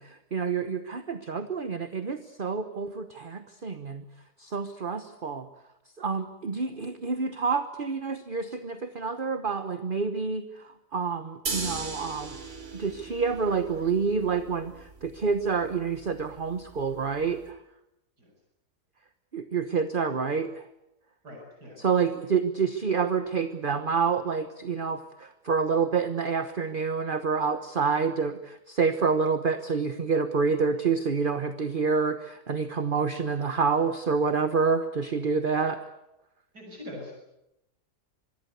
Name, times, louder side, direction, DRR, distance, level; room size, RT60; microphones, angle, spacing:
voice 1, 0.0-4.0 4.4-5.5 6.0-12.4 12.7-14.7 15.0-17.6 19.3-20.6 21.8-35.8, right 5 dB, 35° right, 10 dB, 1.2 m, -28 dB
sound 1, 11.5-17.5, right 3 dB, 60° right, 3.9 m, -39 dB
voice 2, 21.2-21.8 36.5-37.1, left 1 dB, 80° right, 1 dB, 7.4 m, -42 dB
26.0 x 22.5 x 8.3 m, 0.86 s
omnidirectional pair, 1.7 m